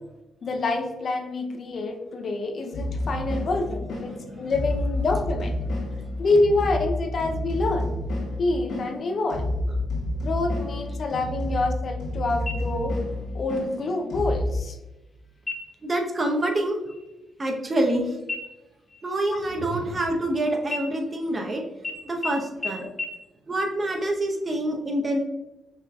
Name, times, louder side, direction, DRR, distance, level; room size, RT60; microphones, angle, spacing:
voice 1, 0.4-5.6 6.2-7.9 8.4-9.5 10.2-12.9 13.3-14.8 19.3-19.5 22.8-22.9, left 2 dB, 55° left, 4 dB, 0.6 m, -27 dB
sound 1, 2.7-14.6, left 1 dB, 80° left, 1.3 m, -30 dB
sound 2, 12.5-13.1 13.5-13.6 14.2-14.7 15.4-15.9 16.3-16.6 16.9-18.0 18.3-20.3 20.7-21.5 21.8-21.9 22.2-22.3 22.6-22.7 23.0-23.1, left 3 dB, 25° left, 0.9 m, -35 dB
voice 2, 15.8-16.8 17.4-18.2 19.0-21.6 22.0-22.9 23.5-25.2, right 1 dB, 35° right, 1 dB, 0.9 m, -26 dB
sound 3, 19.3-20.5, right 5 dB, 75° right, 0.4 m, -39 dB
5.6 x 3.2 x 2.3 m, 1.0 s
supercardioid pair, 60°, 0 cm